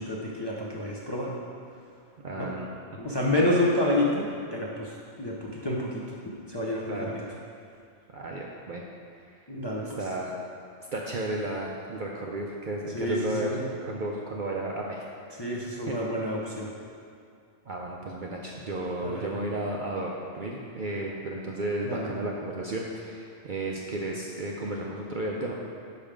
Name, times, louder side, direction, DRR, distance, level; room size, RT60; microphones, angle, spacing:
voice 1, 0.0-1.4 2.4-2.5 3.0-7.1 9.5-10.0 12.9-13.7 15.4-16.7 19.0-19.3 21.8-22.1, left 1 dB, 25° left, -5 dB, 0.6 m, -29 dB
voice 2, 2.2-2.7 6.9-7.3 8.1-8.8 10.0-10.4 10.9-13.6 13.8-15.0 15.9-16.0 17.7-25.5, right 2 dB, 55° right, -2 dB, 0.6 m, -33 dB
5.8 x 5.4 x 5.0 m, 2.3 s
omnidirectional pair, 1.3 m